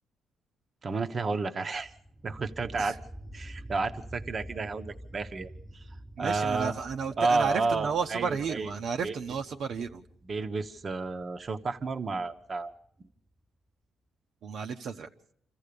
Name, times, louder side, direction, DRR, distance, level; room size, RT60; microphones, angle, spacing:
voice 1, 0.8-1.9 2.2-3.0 3.3-5.9 6.2-6.7 7.2-8.7 9.0-9.1 10.3-12.7, right 3 dB, 40° right, 7 dB, 1.0 m, -31 dB
sound 1, 1.7-13.3, right 1 dB, 5° right, 1.2 m, -48 dB
voice 2, 6.2-10.0 14.4-15.1, right 6 dB, 65° right, 4 dB, 1.0 m, -32 dB
27.0 x 14.5 x 6.9 m, 0.70 s
cardioid pair, 90°, 0 cm